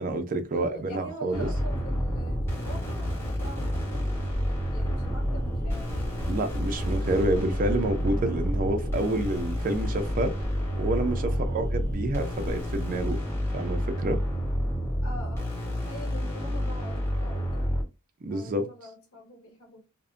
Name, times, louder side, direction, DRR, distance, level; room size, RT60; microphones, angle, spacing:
voice 1, 0.0-1.5 6.3-10.4 10.8-13.2 13.5-14.2 18.2-18.7, right 1 dB, 40° right, 0.4 m, -28 dB
voice 2, 0.5-6.0 11.3-11.5 15.0-17.7 18.3-19.8, equal, 70° left, 1.0 m, -44 dB
sound 1, 1.3-17.8, equal, 10° left, 1.1 m, -29 dB
Telephone, 4.2-13.1, equal, 20° right, 0.9 m, -40 dB
2.6 x 2.1 x 2.4 m
head